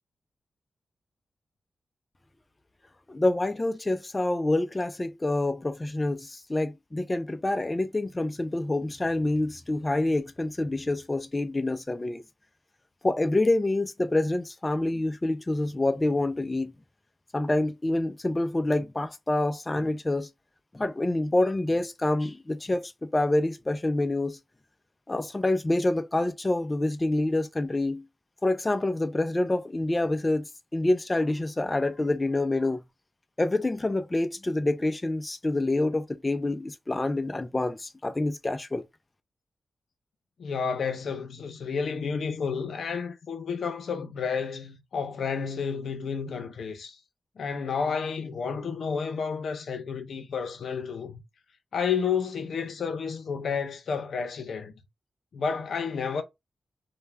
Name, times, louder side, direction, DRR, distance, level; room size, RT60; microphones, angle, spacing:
voice 1, 3.1-12.2 13.0-16.7 17.3-20.3 20.7-24.4 25.1-28.0 28.4-32.8 33.4-38.8, left 2 dB, 25° left, 0.3 m, -27 dB
voice 2, 40.4-47.0 47.4-51.2 51.7-54.7 55.3-56.2, left 6 dB, 80° left, 0.5 m, -31 dB
2.3 x 2.1 x 3.2 m
cardioid pair, 70°, 0 cm